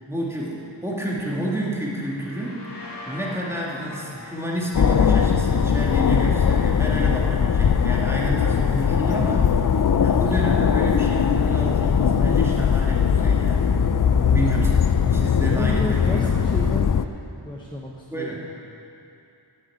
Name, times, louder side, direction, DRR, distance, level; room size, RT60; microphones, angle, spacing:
voice 1, 0.0-2.7 3.1-13.7 14.3-16.4 18.1-18.4, right 1 dB, 5° right, -4 dB, 1.9 m, -30 dB
sound 1, 1.9-9.5, left 2 dB, 65° left, 2.0 m, -44 dB
sound 2, 4.7-17.0, left 7 dB, 45° left, 0.4 m, -20 dB
voice 2, 15.4-17.0 17.3-18.3, equal, 10° left, -3 dB, 0.9 m, -32 dB
10.0 x 8.0 x 8.5 m, 2.8 s
wide cardioid pair, 75°, 45 cm